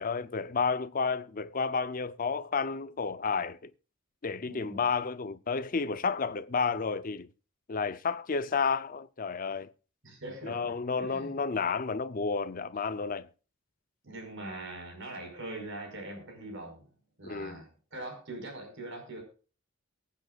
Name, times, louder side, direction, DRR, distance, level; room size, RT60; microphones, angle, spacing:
voice 1, 0.0-3.7 4.2-7.3 7.7-9.7 10.4-13.3 17.2-17.6, left 5 dB, 40° left, 0.6 m, -31 dB
voice 2, 4.5-4.9 10.0-11.4 14.0-16.8 17.2-19.2, right 2 dB, 60° right, 5.2 m, -42 dB
23.5 x 8.6 x 2.4 m
head